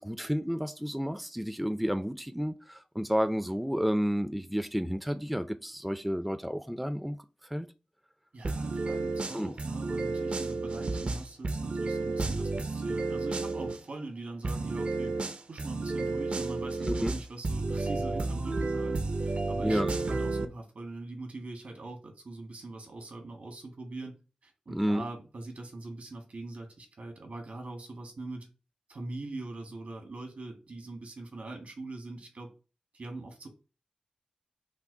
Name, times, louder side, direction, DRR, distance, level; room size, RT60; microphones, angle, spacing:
voice 1, 0.0-7.2 7.5-7.7 9.3-9.5 16.9-17.1 19.6-19.9 24.7-25.0, equal, 5° right, 0.4 m, -31 dB
voice 2, 8.3-15.1 15.5-28.5 28.9-32.5 32.9-33.5, right 2 dB, 70° right, 1.5 m, -42 dB
sound 1, 8.4-13.8 14.4-20.4, right 3 dB, 55° right, 0.5 m, -32 dB
5.9 x 2.0 x 3.8 m
wide cardioid pair, 65°, 2 cm